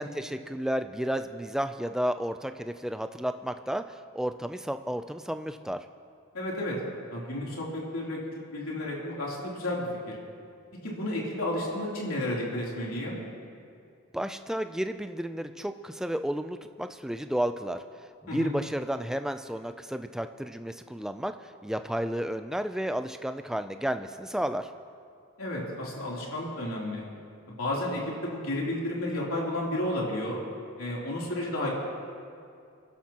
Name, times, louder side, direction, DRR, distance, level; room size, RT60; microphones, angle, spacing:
voice 1, 0.0-5.8 14.1-17.8 18.2-24.7, equal, ahead, 9 dB, 0.3 m, -32 dB
voice 2, 6.3-6.8 7.1-8.2 8.5-10.2 10.8-13.2 18.3-18.5 25.4-27.0 27.5-30.4 30.8-31.7, left 1 dB, 75° left, -4 dB, 3.2 m, -32 dB
27.0 x 12.0 x 2.9 m, 2.3 s
head